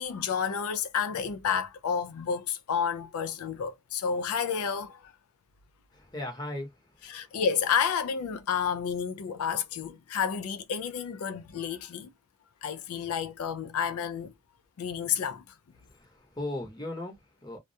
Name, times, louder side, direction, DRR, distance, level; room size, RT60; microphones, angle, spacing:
voice 1, 0.0-5.1 7.1-12.1 12.6-14.3 14.8-15.4, left 7 dB, 90° left, 0.4 m, -30 dB
voice 2, 5.9-7.4 15.8-17.6, left 1 dB, 20° left, 0.8 m, -38 dB
2.3 x 2.0 x 2.6 m
head